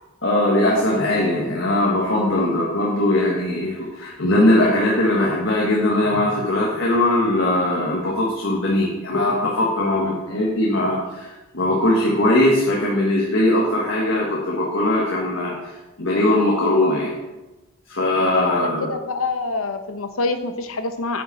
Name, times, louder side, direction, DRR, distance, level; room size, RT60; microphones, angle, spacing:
voice 1, 0.2-17.1 17.9-18.9, left 1 dB, 60° left, -3 dB, 1.6 m, -20 dB
voice 2, 18.3-21.2, left 3 dB, 80° left, 8 dB, 0.9 m, -26 dB
9.2 x 8.7 x 4.2 m, 1.1 s
head